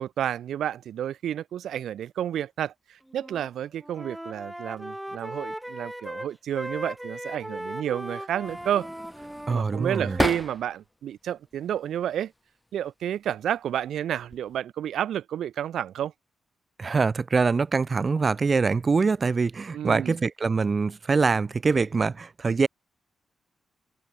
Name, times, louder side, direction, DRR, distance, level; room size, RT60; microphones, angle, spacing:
voice 1, 0.0-8.9 9.5-12.3 12.7-16.1 19.7-20.2, right 10 dB, 85° right, 1.4 m, -30 dB
Wind instrument woodwind instrument, 3.1-3.5 3.8-10.3, right 1 dB, 5° right, 1.5 m, -38 dB
sound 1, 8.4-10.9 11.4-12.2 13.1-13.5 13.8-14.6, left 1 dB, 10° left, 0.7 m, -34 dB
voice 2, 9.5-10.2 16.8-22.7, right 4 dB, 40° right, 0.4 m, -24 dB
open air
cardioid pair, 90°, 0 cm